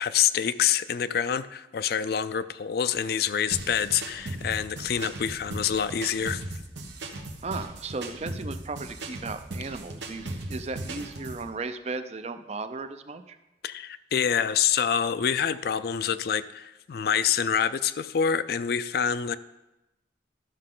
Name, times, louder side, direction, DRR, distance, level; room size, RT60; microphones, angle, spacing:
voice 1, 0.0-6.4 13.6-19.4, left 8 dB, 60° left, 14 dB, 0.4 m, -26 dB
sound 1, 3.5-11.5, right 2 dB, 90° right, 1.1 m, -37 dB
voice 2, 7.4-13.4, right 3 dB, 35° right, 10 dB, 0.5 m, -36 dB
12.5 x 6.5 x 3.8 m, 0.98 s
head